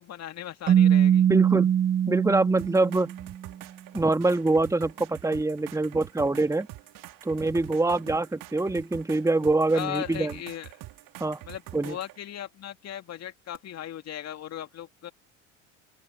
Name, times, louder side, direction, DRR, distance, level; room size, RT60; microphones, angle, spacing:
voice 1, 0.0-1.3 7.8-8.0 9.7-10.7 11.4-15.1, left 11 dB, 40° left, 2.4 m, -37 dB
Keyboard (musical), 0.7-3.4, right 9 dB, 25° right, 0.4 m, -22 dB
voice 2, 1.3-1.7 2.1-3.1 3.9-6.7 7.2-10.3 11.2-11.4 11.7-12.0, right 2 dB, 10° right, 2.0 m, -24 dB
sound 1, 2.6-12.2 13.5-13.6, right 17 dB, 55° right, 1.9 m, -45 dB
open air
hypercardioid pair, 75°, 39 cm